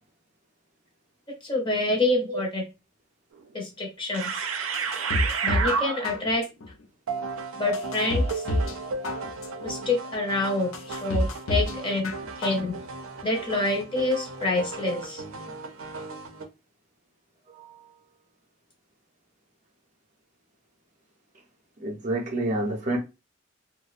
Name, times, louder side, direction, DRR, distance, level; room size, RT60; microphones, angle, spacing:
voice 1, 1.4-2.6 3.5-4.4 5.4-6.4 7.6-8.4 9.6-12.1 12.4-12.7 13.2-15.5, left 2 dB, 25° left, 0.6 m, -27 dB
sound 1, 3.3-3.4 4.1-6.3 7.1-16.4, right 5 dB, 85° right, 0.5 m, -33 dB
sound 2, 4.7-5.8 6.0-6.7 7.2-7.3 7.7-8.8 9.0-9.7 10.2-10.3 10.7-11.8 12.0-12.7 13.0-13.1, left 1 dB, 75° left, 0.4 m, -28 dB
voice 2, 17.5-17.9 21.8-23.0, right 1 dB, 40° right, 0.6 m, -29 dB
2.6 x 2.0 x 2.4 m
head